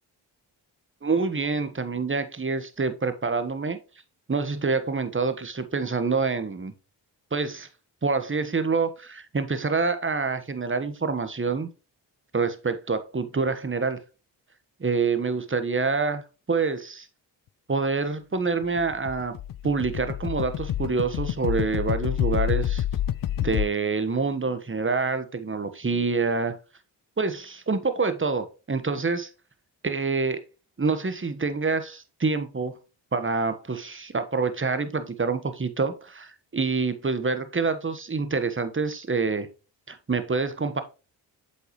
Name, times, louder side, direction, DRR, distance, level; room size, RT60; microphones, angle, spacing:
voice 1, 1.0-3.8 4.3-6.7 7.3-7.7 8.0-11.7 12.3-14.0 14.8-16.2 16.5-17.1 17.7-19.3 19.6-22.8 23.4-26.6 27.2-29.3 29.8-30.4 30.8-32.8 33.1-39.5 39.9-40.8, right 4 dB, 25° right, 1.3 m, -26 dB
sound 1, 18.6-23.7, left 11 dB, 45° left, 0.5 m, -28 dB
8.0 x 5.5 x 3.1 m
supercardioid pair, 40°, 49 cm